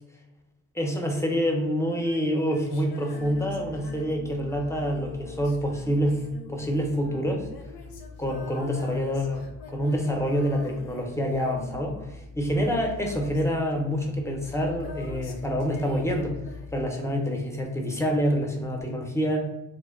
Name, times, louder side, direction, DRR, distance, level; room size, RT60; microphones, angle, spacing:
voice 1, 0.7-6.2 6.5-7.5 8.2-12.0 12.4-16.3 16.7-19.4, equal, 5° left, 1 dB, 0.5 m, -27 dB
Female singing, 1.9-17.3 18.8-18.9, left 5 dB, 80° left, 0.5 m, -46 dB
sound 1, 3.2-16.8, left 4 dB, 80° right, 0.7 m, -45 dB
2.6 x 2.1 x 2.3 m, 0.94 s
supercardioid pair, 60°, 39 cm